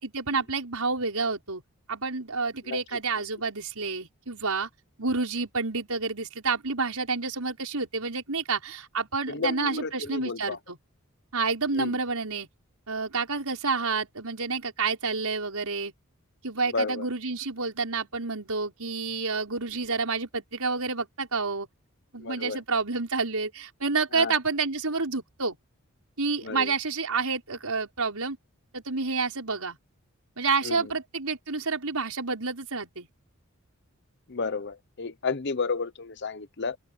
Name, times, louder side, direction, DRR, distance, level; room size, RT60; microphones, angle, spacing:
voice 1, 0.0-1.6 1.9-4.7 5.0-10.8 11.3-12.5 12.9-15.9 16.4-21.7 22.1-25.6 26.2-28.4 28.7-29.8 30.4-33.1, right 4 dB, 85° right, 5.9 m, -29 dB
voice 2, 9.3-10.6 11.8-12.0 16.7-17.1 22.2-22.6 24.1-24.3 26.4-26.7 30.6-30.9 34.3-36.8, left 4 dB, 50° left, 0.8 m, -32 dB
open air
head